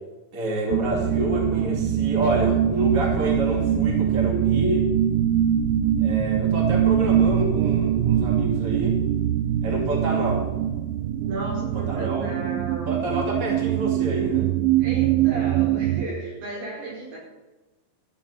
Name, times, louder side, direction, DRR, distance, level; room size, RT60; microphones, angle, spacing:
voice 1, 0.3-4.9 6.0-9.0 9.6-10.5 11.7-12.3 12.9-14.5, right 1 dB, 25° right, -2 dB, 1.9 m, -28 dB
sound 1, 0.7-16.1, right 10 dB, 90° right, 3.0 m, -23 dB
voice 2, 11.2-13.0 14.8-17.2, right 2 dB, 60° right, -5 dB, 6.4 m, -34 dB
13.5 x 6.2 x 7.4 m, 1.1 s
omnidirectional pair, 5.2 m